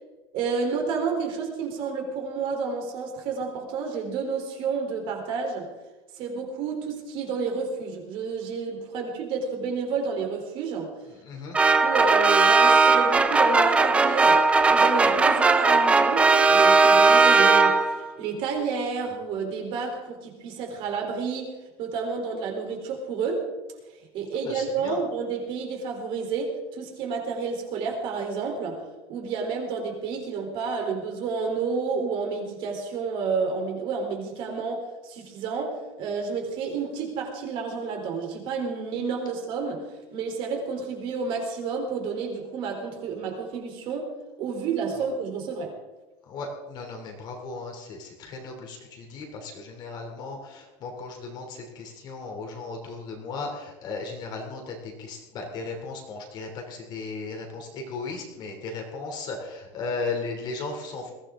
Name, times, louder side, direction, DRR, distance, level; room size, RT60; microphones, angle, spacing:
voice 1, 0.3-5.7 6.1-10.9 11.8-23.5 24.1-28.8 29.1-39.9 40.1-45.7, right 5 dB, 40° right, 2 dB, 3.6 m, -30 dB
voice 2, 11.2-11.6 24.4-25.0 46.3-61.1, left 3 dB, 35° left, 2 dB, 3.0 m, -36 dB
sound 1, 11.5-18.1, right 4 dB, 10° right, 0.5 m, -18 dB
21.5 x 16.0 x 3.7 m, 1.1 s
cardioid pair, 180°, 13 cm